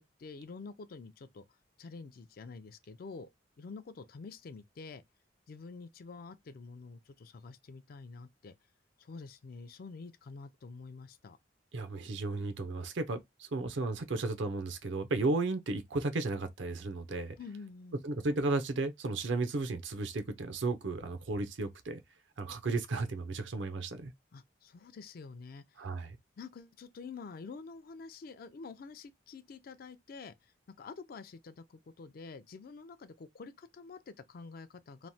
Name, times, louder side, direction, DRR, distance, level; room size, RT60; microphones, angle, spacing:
voice 1, 0.0-1.5 1.8-3.3 3.6-5.0 5.5-8.5 9.0-11.4 17.4-18.0 24.3-25.6 26.4-30.5 30.8-35.1, left 4 dB, 50° left, 0.4 m, -48 dB
voice 2, 11.7-17.3 18.0-22.0 22.4-24.1 25.8-26.2, right 3 dB, 75° right, 0.6 m, -34 dB
3.0 x 2.1 x 2.7 m
head